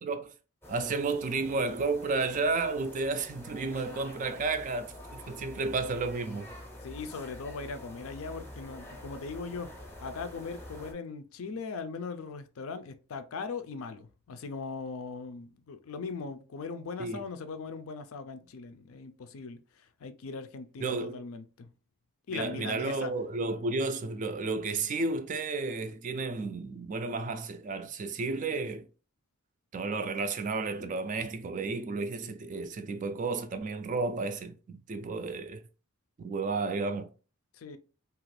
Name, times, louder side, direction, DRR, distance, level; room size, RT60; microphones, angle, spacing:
voice 1, 0.0-0.3 0.7-6.5 17.0-17.2 20.8-21.2 22.3-28.9 29.7-35.6 36.2-37.1, right 3 dB, 35° right, 0.3 m, -32 dB
sound 1, 0.6-10.9, left 1 dB, 10° left, 0.6 m, -47 dB
voice 2, 6.8-9.7 10.0-21.7 22.3-23.1 37.5-37.8, left 4 dB, 70° left, 0.4 m, -39 dB
2.9 x 2.4 x 3.1 m
head